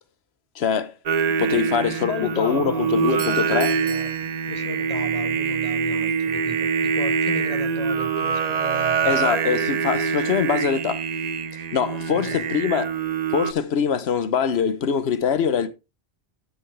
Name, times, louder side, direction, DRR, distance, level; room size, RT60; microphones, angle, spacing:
voice 1, 0.5-0.9 1.4-3.7 9.0-11.0 11.7-12.9 13.3-15.7, left 7 dB, 80° left, 1.1 m, -23 dB
Singing, 1.1-13.5, right 6 dB, 50° right, 0.6 m, -24 dB
voice 2, 1.4-4.1 4.5-9.1 11.9-12.4, left 4 dB, 40° left, 1.0 m, -36 dB
Doorbell, 3.0-5.1, right 8 dB, 65° right, 1.1 m, -40 dB
12.5 x 5.9 x 3.3 m
omnidirectional pair, 1.1 m